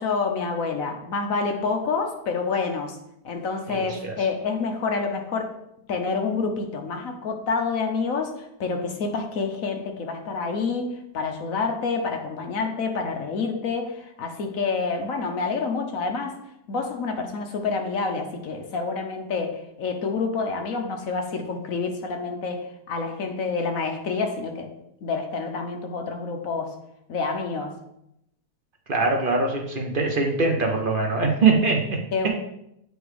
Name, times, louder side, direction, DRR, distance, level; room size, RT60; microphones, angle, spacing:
voice 1, 0.0-3.0 3.2-5.5 5.9-16.4 16.7-24.7 25.0-26.8 27.1-27.7 32.1-32.3, left 4 dB, 60° left, 4 dB, 1.1 m, -28 dB
voice 2, 3.7-4.2 28.9-32.0, right 4 dB, 45° right, 2 dB, 0.7 m, -22 dB
7.8 x 3.3 x 4.8 m, 0.79 s
omnidirectional pair, 1.8 m